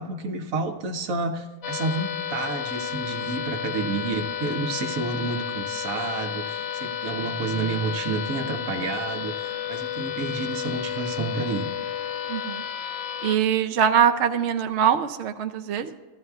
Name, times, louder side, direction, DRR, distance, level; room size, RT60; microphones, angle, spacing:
voice 1, 0.0-9.3 9.7-11.7, right 4 dB, 80° right, 5 dB, 1.3 m, -30 dB
sound 1, 1.6-13.4, left 9 dB, 60° left, 0.8 m, -32 dB
voice 2, 12.3-12.6 13.2-16.0, right 8 dB, 65° right, 6 dB, 0.8 m, -23 dB
14.0 x 13.0 x 2.3 m, 1.4 s
omnidirectional pair, 1.4 m